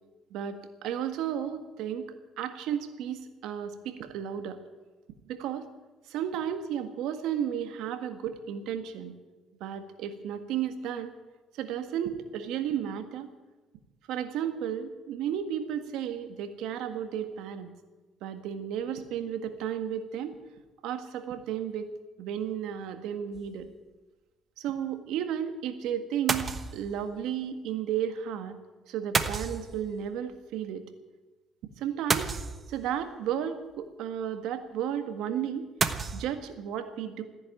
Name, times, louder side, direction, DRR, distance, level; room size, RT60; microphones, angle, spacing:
voice 1, 0.3-4.6 5.3-5.7 6.1-9.1 9.6-11.1 11.6-13.3 14.1-17.7 18.2-20.3 20.8-21.9 22.2-23.7 24.6-28.5 28.9-30.9 31.8-32.3 32.7-35.7 36.1-37.2, right 9 dB, 85° right, 8 dB, 1.7 m, -33 dB
sound 1, 23.3-23.6 26.3-26.9 29.1-30.1 32.1-33.0 35.8-36.2, right 5 dB, 35° right, 1.2 m, -30 dB
15.0 x 10.5 x 9.1 m, 1.2 s
cardioid pair, 95°, 0 cm